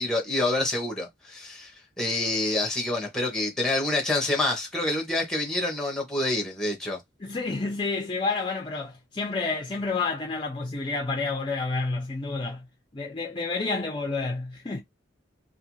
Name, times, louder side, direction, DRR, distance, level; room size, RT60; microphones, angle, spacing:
voice 1, 0.0-1.7 2.0-7.0, left 2 dB, 5° left, 0.8 m, -27 dB
voice 2, 7.2-12.7 12.9-14.8, left 3 dB, 25° left, 0.4 m, -29 dB
2.5 x 2.4 x 2.9 m
head